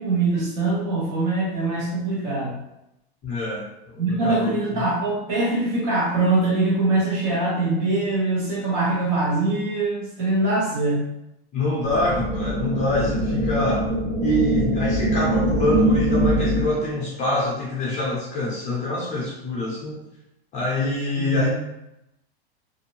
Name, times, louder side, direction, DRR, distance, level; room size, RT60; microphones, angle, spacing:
voice 1, 0.0-2.5 4.0-11.1 21.2-21.5, right 2 dB, 45° right, -4 dB, 1.0 m, -23 dB
voice 2, 3.2-4.8 11.5-13.9 14.2-20.0 20.5-21.5, left 1 dB, 25° left, -5 dB, 0.6 m, -25 dB
sound 1, 11.8-16.9, equal, 80° right, 1.0 m, -23 dB
2.5 x 2.0 x 2.9 m, 0.87 s
supercardioid pair, 155°, 31 cm